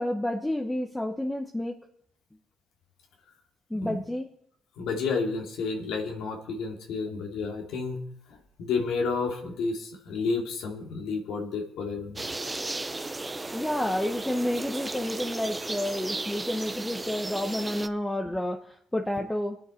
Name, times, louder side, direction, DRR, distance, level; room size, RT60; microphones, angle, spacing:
voice 1, 0.0-1.8 3.7-4.3 13.5-19.6, left 1 dB, 10° left, 3 dB, 1.1 m, -30 dB
voice 2, 4.8-8.0 8.6-12.2, left 4 dB, 85° left, 1 dB, 2.5 m, -31 dB
sound 1, 12.2-17.9, right 2 dB, 20° right, 0.8 m, -35 dB
23.5 x 9.3 x 4.4 m, 0.66 s
cardioid pair, 90°, 0 cm